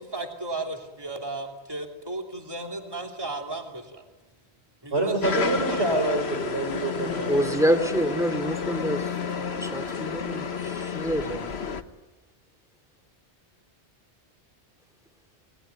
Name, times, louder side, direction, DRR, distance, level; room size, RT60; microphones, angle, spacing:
voice 1, 0.0-4.0 4.8-5.9 7.1-7.5, right 2 dB, 20° right, 3 dB, 3.0 m, -35 dB
voice 2, 4.9-7.5, right 2 dB, 70° right, 4 dB, 4.0 m, -26 dB
sound 1, 5.2-11.8, left 6 dB, 70° left, 1.5 m, -31 dB
voice 3, 7.0-9.1 9.4-11.5, equal, 5° right, 7 dB, 2.7 m, -27 dB
27.5 x 20.0 x 9.3 m, 1.1 s
omnidirectional pair, 1.1 m